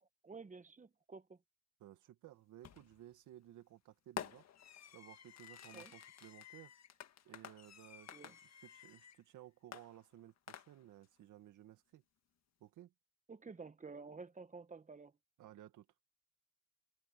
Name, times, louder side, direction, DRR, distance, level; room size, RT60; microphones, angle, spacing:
voice 1, 0.0-1.4 5.7-5.9 8.1-8.3 13.3-15.1, right 4 dB, 25° right, 1.4 m, -52 dB
voice 2, 1.8-4.5 4.9-6.7 7.2-12.0 12.6-12.9 15.4-15.9, right 13 dB, 80° right, 2.0 m, -57 dB
Fireworks, 2.6-3.0 4.2-9.2 9.7-11.1, left 9 dB, 60° left, 1.7 m, -51 dB
cardioid pair, 90°, 30 cm